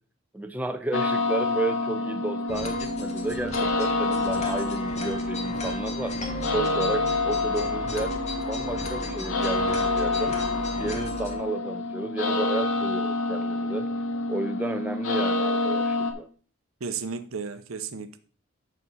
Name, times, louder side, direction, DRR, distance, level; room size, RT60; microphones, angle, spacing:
voice 1, 0.3-8.1 8.5-10.3 10.8-13.9 14.3-16.3, right 2 dB, 10° right, 0.5 m, -32 dB
sound 1, 0.9-16.1, left 2 dB, 75° left, 1.0 m, -28 dB
sound 2, 2.5-11.4, left 1 dB, 35° left, 1.2 m, -35 dB
voice 2, 16.8-18.2, right 5 dB, 85° right, 0.7 m, -33 dB
6.8 x 6.2 x 4.0 m
head